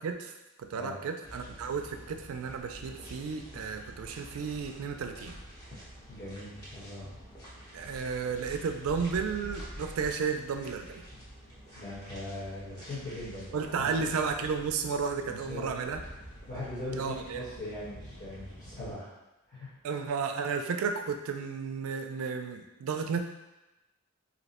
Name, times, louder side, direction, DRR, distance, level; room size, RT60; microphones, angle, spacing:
voice 1, 0.0-5.4 7.7-11.0 13.5-16.0 16.9-17.4 19.8-23.2, right 5 dB, 70° right, 6 dB, 0.3 m, -33 dB
sound 1, 1.2-18.9, equal, 20° left, 0.9 m, -47 dB
voice 2, 6.1-7.1 11.7-14.1 15.2-16.0 16.5-19.1 19.5-19.7, left 1 dB, 35° left, -11 dB, 1.1 m, -40 dB
2.7 x 2.1 x 4.1 m, 0.99 s
head